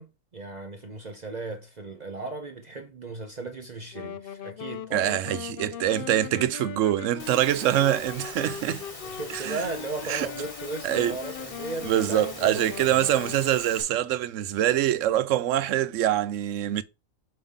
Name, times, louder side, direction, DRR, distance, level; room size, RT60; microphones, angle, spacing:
voice 1, 0.0-5.1 9.0-12.6 12.9-13.1, right 3 dB, 40° right, 0.7 m, -36 dB
Wind instrument woodwind instrument, 3.9-13.4, left 9 dB, 65° left, 0.5 m, -39 dB
voice 2, 4.9-8.8 9.3-9.6 10.1-10.3 10.8-11.2 11.8-16.8, right 12 dB, 75° right, 0.9 m, -24 dB
Engine / Mechanisms, 7.2-13.8, left 2 dB, 30° left, 1.1 m, -42 dB
5.4 x 3.6 x 5.5 m
omnidirectional pair, 1.4 m